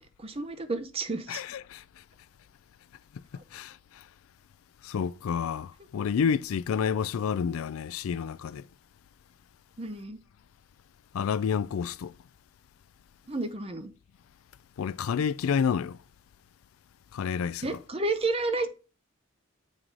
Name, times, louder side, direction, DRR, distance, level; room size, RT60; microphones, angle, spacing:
voice 1, 0.2-1.4 9.8-10.2 13.3-13.9 17.6-18.7, right 3 dB, 25° right, 0.6 m, -31 dB
voice 2, 1.3-1.8 3.5-3.7 4.8-8.6 11.1-12.1 14.8-16.0 17.1-17.7, left 7 dB, 75° left, 0.3 m, -29 dB
7.4 x 4.7 x 3.8 m
head